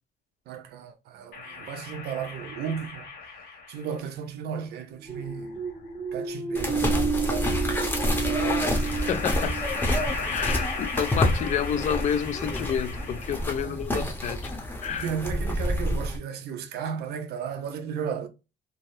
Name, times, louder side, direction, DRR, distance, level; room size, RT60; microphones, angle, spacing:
voice 1, 0.5-3.1 3.7-5.6 6.1-8.2 13.5-14.2 14.9-18.3, right 7 dB, 75° right, 0.6 m, -35 dB
sound 1, 1.3-4.0 5.1-6.1 7.7-13.7, left 4 dB, 85° left, 1.4 m, -38 dB
sound 2, 4.9-10.6, right 5 dB, 15° right, 0.4 m, -31 dB
sound 3, 6.5-16.2, left 1 dB, 10° left, 0.8 m, -28 dB
voice 2, 8.9-9.6 10.2-14.5 14.8-15.1, left 8 dB, 45° left, 0.4 m, -29 dB
3.3 x 2.1 x 2.6 m
cardioid pair, 110°, 17 cm